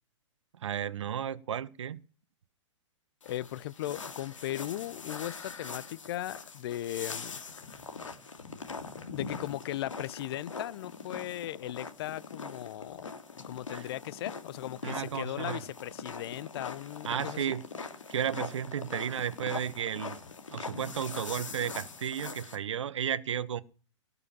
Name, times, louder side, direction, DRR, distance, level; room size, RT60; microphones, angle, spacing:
voice 1, 0.6-2.0 13.7-13.8 14.8-15.6 17.0-17.6 18.1-20.2 20.5-23.6, right 9 dB, 70° right, 1.1 m, -33 dB
sound 1, 3.2-22.6, left 4 dB, 80° left, 2.4 m, -42 dB
voice 2, 3.2-7.4 9.1-17.6, left 14 dB, 55° left, 0.6 m, -38 dB
18.5 x 6.9 x 7.2 m
hypercardioid pair, 115°, 16 cm